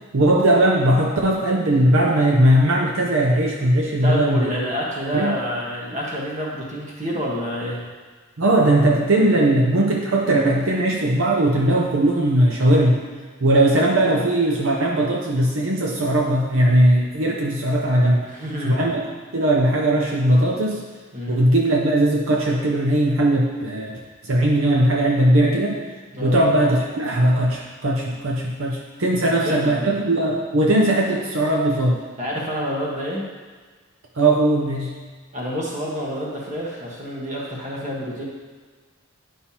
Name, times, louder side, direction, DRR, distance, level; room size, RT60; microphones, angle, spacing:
voice 1, 0.1-4.5 5.1-5.4 8.4-13.0 13.4-18.3 18.6-19.0 19.3-20.8 21.3-25.8 26.2-32.0 34.1-34.9, right 1 dB, 70° right, -1 dB, 0.7 m, -19 dB
voice 2, 4.0-7.8 13.7-13.8 18.2-19.0 21.1-21.4 26.1-26.4 29.3-30.0 32.2-33.3 35.3-38.3, equal, 35° right, -4 dB, 1.4 m, -28 dB
9.6 x 5.6 x 2.9 m, 1.5 s
head